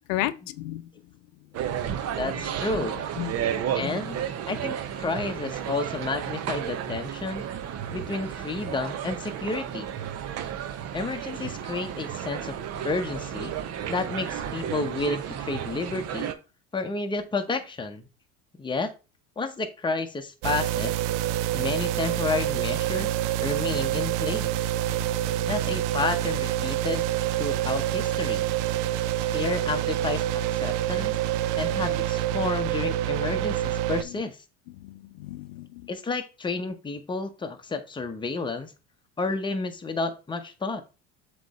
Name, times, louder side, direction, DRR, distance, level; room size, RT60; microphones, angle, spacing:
voice 1, 0.1-0.8 3.2-3.5 3.8-3.9 34.8-35.8, left 15 dB, 80° left, 0.6 m, -32 dB
sound 1, 1.5-16.3, right 9 dB, 45° right, 0.9 m, -33 dB
voice 2, 2.2-3.0 3.7-4.2 4.5-7.5 7.9-9.9 10.9-12.6 12.8-13.5 13.9-16.3 16.7-18.1 18.6-18.9 19.4-21.0 21.5-24.5 25.5-28.5 29.3-30.2 30.5-31.2 31.6-34.4 35.9-38.7 39.2-40.8, left 3 dB, 15° left, 0.9 m, -31 dB
sound 2, 20.4-34.0, right 13 dB, 60° right, 0.5 m, -27 dB
7.4 x 3.2 x 4.2 m
supercardioid pair, 115°, 36 cm